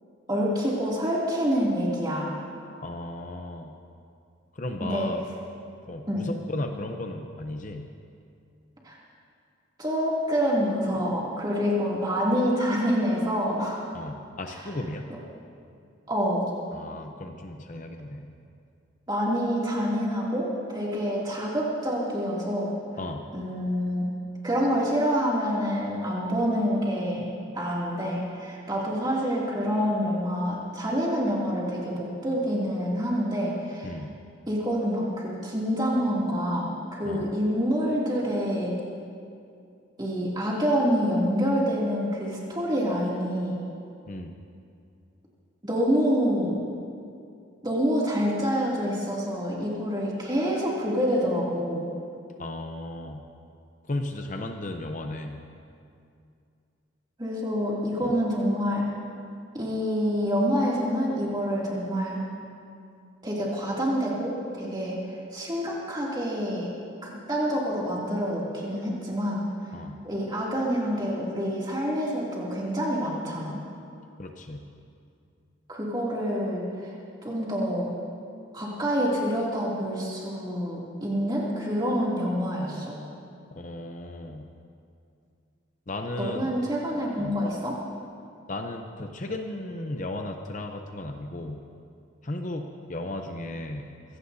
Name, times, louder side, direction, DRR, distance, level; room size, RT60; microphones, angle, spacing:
voice 1, 0.3-2.4 4.8-5.1 6.1-6.2 8.8-9.0 9.8-13.9 16.1-16.5 19.1-22.7 23.3-24.1 24.4-33.9 34.5-38.8 40.0-43.6 45.6-46.6 47.6-51.9 57.2-58.9 59.5-62.2 63.2-65.0 65.3-66.7 67.0-69.4 70.0-73.6 75.7-76.9 77.2-77.9 78.5-83.0 86.2-87.8, equal, 20° right, -5 dB, 2.6 m, -27 dB
voice 2, 2.8-3.8 4.5-5.2 5.9-7.9 13.9-15.1 16.7-18.3 23.0-23.2 33.8-34.1 37.0-37.3 44.1-44.3 52.4-53.2 53.8-55.4 58.0-58.1 69.7-70.0 74.2-74.6 83.5-84.5 85.9-86.5 87.2-87.4 88.5-91.6 92.2-93.9, left 1 dB, 40° left, 4 dB, 0.7 m, -35 dB
23.5 x 16.0 x 2.7 m, 2.5 s
head